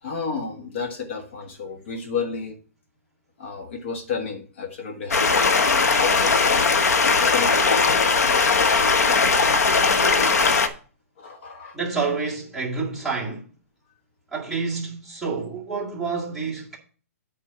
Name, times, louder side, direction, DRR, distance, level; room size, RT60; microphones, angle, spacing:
voice 1, 0.0-2.6 3.4-6.6 7.0-8.6 11.2-12.1, left 5 dB, 45° left, 1.2 m, -33 dB
Stream, 5.1-10.7, left 4 dB, 85° left, 1.1 m, -19 dB
voice 2, 11.7-13.4 14.3-16.8, right 4 dB, ahead, 1.8 m, -28 dB
8.5 x 4.4 x 5.6 m
hypercardioid pair, 160°, 8 cm